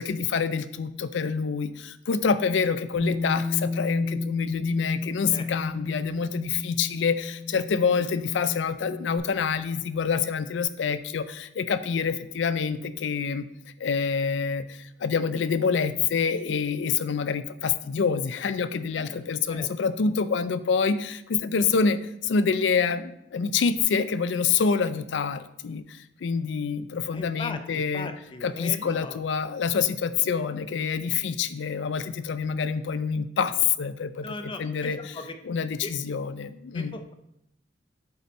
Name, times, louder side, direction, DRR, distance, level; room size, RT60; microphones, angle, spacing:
voice 1, 0.0-13.5 13.8-28.1 28.4-35.1 35.4-37.0, left 6 dB, 80° left, 13 dB, 0.4 m, -27 dB
Bass guitar, 2.9-9.2, left 3 dB, 85° right, 1.9 m, -33 dB
voice 2, 27.1-29.2 34.2-35.4 35.8-35.9 36.7-37.1, left 3 dB, 25° left, 7 dB, 0.5 m, -38 dB
7.8 x 4.2 x 4.1 m, 0.80 s
head